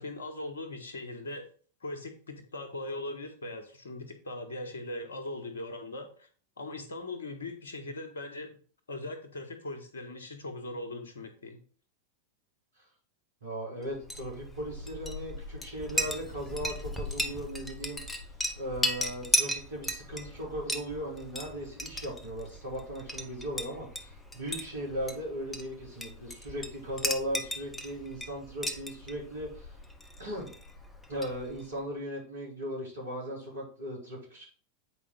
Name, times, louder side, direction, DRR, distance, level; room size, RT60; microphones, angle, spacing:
voice 1, 0.0-1.5 1.8-6.3 6.6-8.6 8.9-11.6, left 2 dB, 70° left, 6 dB, 1.4 m, -40 dB
voice 2, 13.4-18.0 18.6-29.8 30.2-30.5 31.1-34.5, equal, 75° right, -5 dB, 4.1 m, -38 dB
Chink clink, 13.9-31.7, left 1 dB, 10° left, 0.9 m, -36 dB
8.2 x 4.9 x 3.9 m, 0.43 s
figure-of-eight pair, 90°, 0 cm